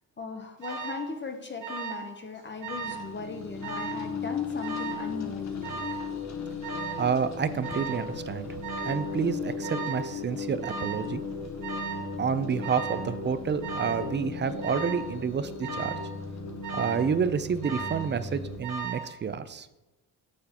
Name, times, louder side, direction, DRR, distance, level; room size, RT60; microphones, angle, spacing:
voice 1, 0.2-5.8, left 4 dB, 30° left, 5 dB, 0.8 m, -38 dB
Alarm, 0.6-1.0 1.6-2.1 2.4-3.0 3.6-4.0 4.6-5.1 5.6-6.1 6.6-7.1 7.6-8.0 8.6-9.0 9.6-10.0 10.6-11.1 11.6-12.1 12.6-13.0 13.6-14.0 14.6-15.1 15.6-16.0 16.6-17.1 17.6-18.1 18.6-19.1, right 5 dB, 55° right, 1.7 m, -36 dB
sound 1, 2.6-18.6, left 4 dB, 45° left, 1.3 m, -37 dB
voice 2, 7.0-8.5 8.8-11.2 12.2-15.9 16.7-19.7, right 6 dB, 30° right, 13 dB, 0.5 m, -29 dB
9.5 x 6.6 x 2.9 m, 1.0 s
cardioid pair, 95°, 37 cm